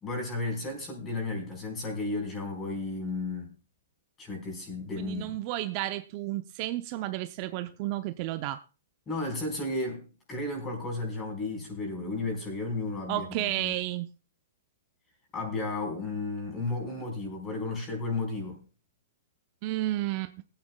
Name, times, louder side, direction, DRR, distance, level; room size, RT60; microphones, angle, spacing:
voice 1, 0.0-3.5 4.2-5.4 9.1-13.7 15.3-18.7, left 2 dB, 20° left, 2 dB, 4.4 m, -33 dB
voice 2, 5.0-8.6 13.1-14.1 19.6-20.4, right 15 dB, 40° right, 11 dB, 0.5 m, -32 dB
22.5 x 8.9 x 2.2 m, 0.33 s
hypercardioid pair, 150°, 0 cm